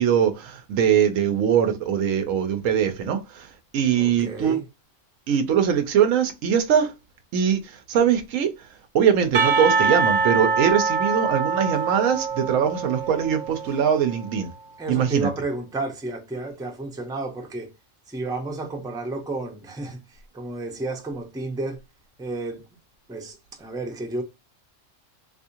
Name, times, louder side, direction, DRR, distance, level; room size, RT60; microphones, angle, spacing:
voice 1, 0.0-4.6 5.3-6.9 7.3-8.5 8.9-14.5 14.9-15.3, right 8 dB, 90° right, 1.0 m, -22 dB
voice 2, 3.9-4.6 14.8-17.7 18.1-20.0 20.3-21.8 22.2-22.6 23.1-24.2, right 2 dB, 5° right, 0.5 m, -31 dB
Percussion, 9.3-14.2, right 5 dB, 55° right, 0.8 m, -24 dB
3.5 x 2.7 x 2.8 m
omnidirectional pair, 1.3 m